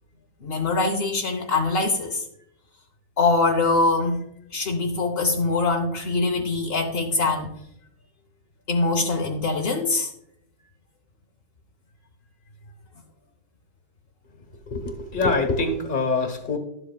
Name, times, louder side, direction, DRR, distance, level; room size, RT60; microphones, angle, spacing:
voice 1, 0.4-2.2 3.2-4.2 4.5-7.5 8.7-10.1, left 3 dB, 55° left, 3 dB, 0.7 m, -23 dB
voice 2, 14.7-16.6, left 3 dB, 35° left, 5 dB, 1.2 m, -24 dB
12.0 x 7.6 x 2.2 m, 0.76 s
omnidirectional pair, 1.8 m